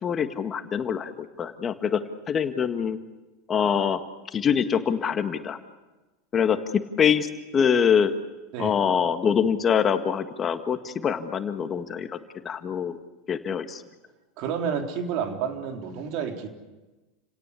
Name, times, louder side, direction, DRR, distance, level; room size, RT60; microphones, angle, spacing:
voice 1, 0.0-2.0 2.3-3.0 3.5-4.0 4.3-5.6 6.3-6.6 7.0-8.1 8.6-12.1 12.5-13.0 13.3-13.8, left 7 dB, 30° left, 8 dB, 1.9 m, -24 dB
voice 2, 14.4-16.5, right 7 dB, 55° right, 4 dB, 3.8 m, -30 dB
30.0 x 17.5 x 8.5 m, 1.2 s
hypercardioid pair, 95°, 0 cm